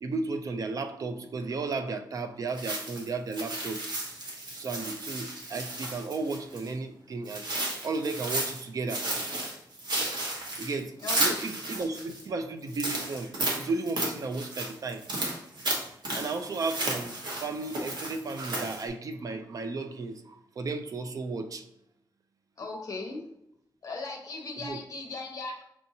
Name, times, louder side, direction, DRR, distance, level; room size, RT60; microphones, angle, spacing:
voice 1, 0.0-3.9 4.5-7.5 7.8-9.1 10.6-13.3 13.6-15.0 16.1-17.1 17.4-21.7 24.6-24.8, right 3 dB, 50° right, 8 dB, 0.4 m, -34 dB
sound 1, 2.5-6.7 7.2-8.6 8.9-12.2 12.7-18.9, right 2 dB, 65° right, 1.0 m, -33 dB
voice 2, 11.0-11.4 22.6-23.2 23.8-25.6, left 3 dB, 50° left, 1 dB, 0.9 m, -38 dB
5.4 x 2.6 x 2.7 m, 0.78 s
wide cardioid pair, 160°, 8 cm